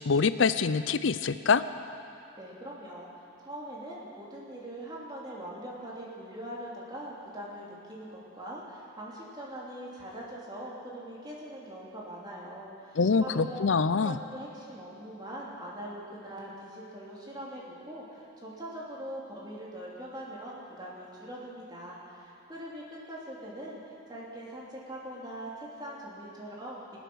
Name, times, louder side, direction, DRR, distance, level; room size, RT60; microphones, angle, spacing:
voice 1, 0.1-1.6 13.0-14.2, left 5 dB, 70° left, 13 dB, 0.5 m, -25 dB
voice 2, 2.4-13.7 14.0-26.8, right 1 dB, 20° right, -5 dB, 2.9 m, -42 dB
24.5 x 8.2 x 6.3 m, 2.9 s
head